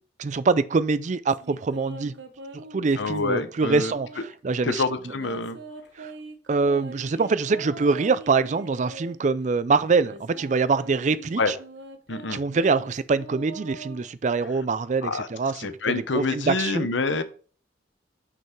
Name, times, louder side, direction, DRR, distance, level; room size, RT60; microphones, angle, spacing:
voice 1, 0.2-2.2 2.5-5.1 6.0-6.1 6.5-11.5 12.3-16.9, right 4 dB, 40° right, 0.4 m, -24 dB
sound 1, 1.3-4.4 5.0-9.2 9.8-14.5, right 3 dB, 75° right, 1.0 m, -43 dB
voice 2, 3.0-3.9 4.6-5.6 11.4-11.5 12.1-12.4 15.0-15.3 15.6-17.2, left 3 dB, 80° left, 0.8 m, -27 dB
6.0 x 5.7 x 4.5 m
head